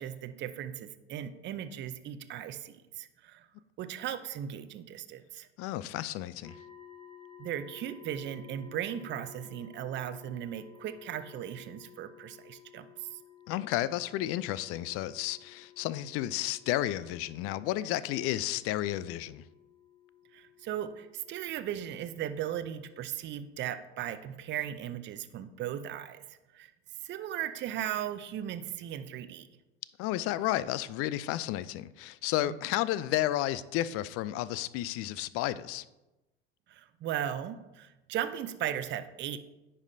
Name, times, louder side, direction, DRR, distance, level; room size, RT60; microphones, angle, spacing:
voice 1, 0.0-3.5 3.8-5.5 7.4-13.2 20.3-26.7 27.0-29.5 36.7-39.4, right 10 dB, 35° right, 0.5 m, -37 dB
voice 2, 5.6-6.5 13.5-19.4 30.0-35.8, left 14 dB, 45° left, 0.4 m, -32 dB
sound 1, 6.4-23.3, left 9 dB, 15° left, 1.9 m, -56 dB
9.6 x 5.3 x 2.7 m
hypercardioid pair, 70°, 32 cm